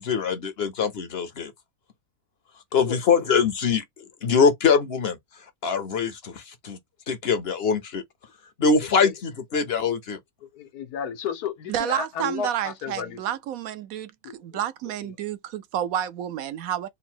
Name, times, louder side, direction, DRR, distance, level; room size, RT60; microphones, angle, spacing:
voice 1, 0.0-1.5 2.7-5.2 5.6-6.8 7.1-8.0 8.6-10.2, left 5 dB, 55° left, 0.7 m, -23 dB
voice 2, 10.4-13.2 14.2-14.6, left 7 dB, 85° left, 1.3 m, -33 dB
voice 3, 11.7-16.9, right 11 dB, 70° right, 1.0 m, -30 dB
3.9 x 2.0 x 4.3 m
omnidirectional pair, 1.6 m